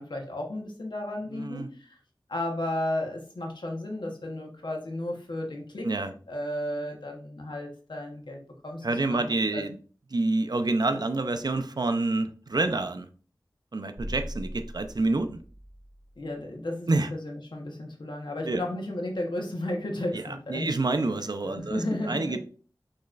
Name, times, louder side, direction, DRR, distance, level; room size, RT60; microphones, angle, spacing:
voice 1, 0.0-2.0 2.3-5.9 6.3-8.8 9.1-9.7 16.2-20.7 21.6-22.4, left 1 dB, 75° left, 1 dB, 1.1 m, -33 dB
voice 2, 1.3-1.7 5.8-6.1 8.8-9.8 10.1-13.1 13.7-15.4 16.9-17.1 18.4-18.6 20.1-22.4, right 2 dB, 60° right, 8 dB, 0.5 m, -28 dB
bass drop, 14.0-16.4, equal, 10° right, 0.7 m, -40 dB
6.3 x 3.1 x 2.4 m, 0.40 s
wide cardioid pair, 45°, 8 cm